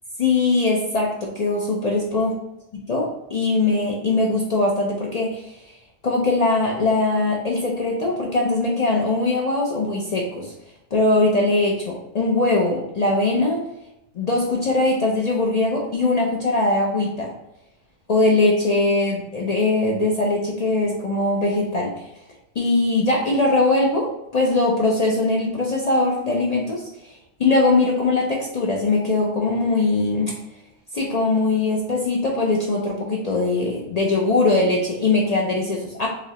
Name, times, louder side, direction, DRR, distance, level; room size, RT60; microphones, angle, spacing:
voice 1, 0.2-2.3 2.9-5.5 6.0-10.5 10.9-13.6 14.2-17.3 18.1-22.0 22.6-27.1 27.4-30.3 30.9-36.1, left 2 dB, 55° left, -2 dB, 0.5 m, -21 dB
4.7 x 2.0 x 2.8 m, 0.89 s
omnidirectional pair, 1.2 m